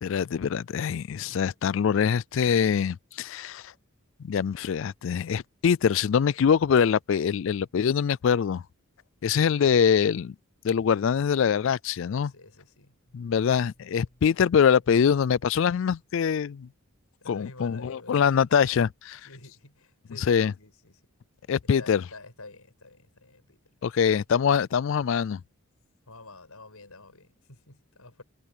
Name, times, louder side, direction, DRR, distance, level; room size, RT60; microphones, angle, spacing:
voice 1, 0.0-3.7 4.2-8.6 9.2-10.3 10.6-12.3 13.1-16.7 17.3-19.2 20.3-20.5 21.5-22.0 23.8-25.4, left 7 dB, 60° left, 0.3 m, -24 dB
voice 2, 12.1-12.9 17.2-18.4 19.2-21.0 21.8-24.0 26.1-28.2, left 2 dB, 85° left, 6.3 m, -48 dB
sound 1, 17.0-17.7, equal, 45° left, 6.6 m, -64 dB
head